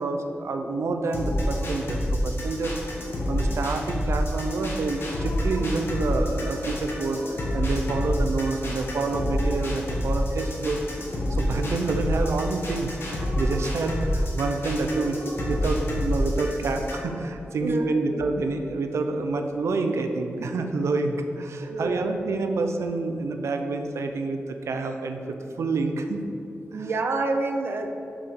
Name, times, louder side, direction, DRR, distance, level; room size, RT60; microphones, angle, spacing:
voice 1, 0.0-3.0 3.3-10.8 11.3-26.2 26.7-26.9, right 3 dB, 85° right, 5 dB, 0.7 m, -28 dB
sound 1, 1.1-17.1, left 1 dB, 60° left, 2.0 m, -28 dB
voice 2, 17.6-18.1 21.6-22.1 26.7-27.9, right 3 dB, 55° right, 5 dB, 0.8 m, -28 dB
6.9 x 5.8 x 7.1 m, 2.8 s
wide cardioid pair, 160°, 5 cm